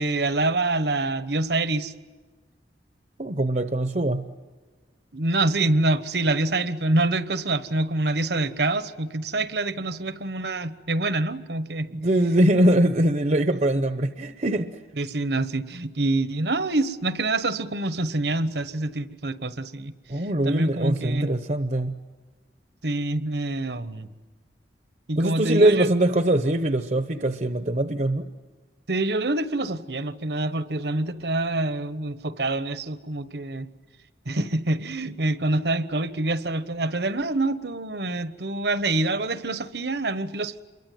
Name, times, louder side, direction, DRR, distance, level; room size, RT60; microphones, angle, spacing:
voice 1, 0.0-1.9 5.1-11.9 15.0-19.9 20.4-21.3 22.8-24.1 25.1-25.9 28.9-33.7 34.3-40.6, right 2 dB, 70° right, 13 dB, 1.2 m, -26 dB
voice 2, 3.2-4.2 11.9-14.8 20.1-22.0 25.2-28.3, right 1 dB, 40° right, 10 dB, 0.9 m, -22 dB
27.5 x 23.0 x 9.3 m, 1.4 s
head